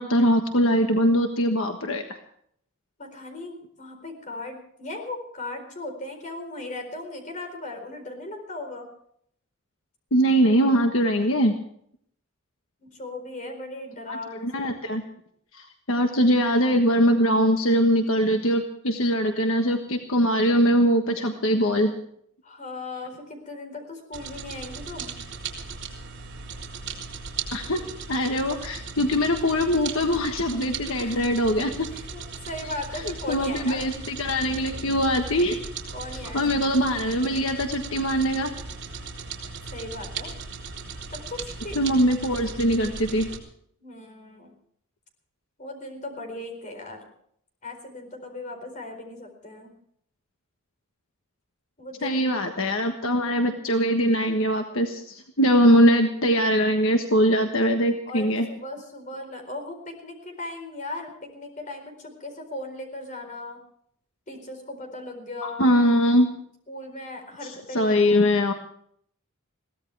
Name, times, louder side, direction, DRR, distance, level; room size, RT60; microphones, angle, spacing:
voice 1, 0.0-2.2 10.1-11.5 14.1-15.0 15.5-21.9 27.5-27.8 28.1-31.9 32.9-35.6 36.1-38.5 41.7-43.3 52.0-58.5 65.4-66.3 67.4-68.5, equal, 70° left, 4 dB, 1.4 m, -22 dB
voice 2, 3.0-8.9 12.8-15.0 22.4-25.1 27.8-27.9 31.0-31.2 31.9-33.8 35.9-36.4 39.7-40.3 41.1-41.8 43.8-44.5 45.6-47.0 47.6-49.7 51.8-52.2 58.1-63.6 64.3-65.7 66.7-68.2, left 2 dB, 35° left, 4 dB, 4.3 m, -37 dB
sound 1, 24.1-43.4, right 5 dB, 55° right, 3.6 m, -37 dB
22.5 x 16.5 x 3.4 m, 0.66 s
head